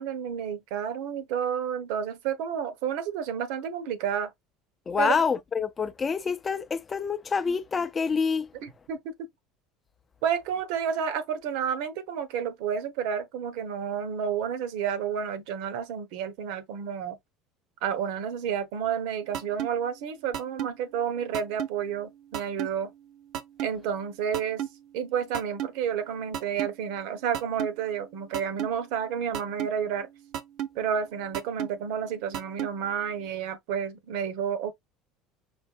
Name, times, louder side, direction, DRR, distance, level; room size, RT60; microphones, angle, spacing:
voice 1, 0.0-4.3 5.0-5.2 8.6-9.3 10.2-17.2 17.8-22.9 23.6-24.6 24.9-30.1 30.7-34.7, right 8 dB, 70° right, 1.1 m, -30 dB
voice 2, 4.9-8.5, left 5 dB, 20° left, 0.5 m, -27 dB
sound 1, 19.3-19.7 20.3-20.7 21.3-21.7 22.3-22.7 23.3-23.7 24.3-24.7 25.3-25.7 26.3-26.7 27.3-27.7 28.3-28.7 29.3-29.7 30.3-30.7 31.3-31.7 32.3-32.7, right 10 dB, 50° right, 0.7 m, -31 dB
5.4 x 3.3 x 2.5 m
cardioid pair, 155°, 0 cm